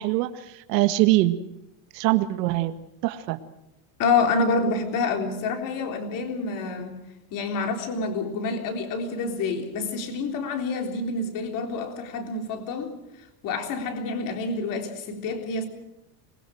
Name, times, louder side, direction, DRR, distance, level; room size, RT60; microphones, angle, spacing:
voice 1, 0.0-1.4 1.9-2.7 3.0-3.4, right 17 dB, 90° right, 1.8 m, -23 dB
voice 2, 4.0-7.0 7.3-13.0 13.4-15.7, left 4 dB, 40° left, 3.8 m, -27 dB
26.5 x 21.0 x 6.4 m
cardioid pair, 170°, 48 cm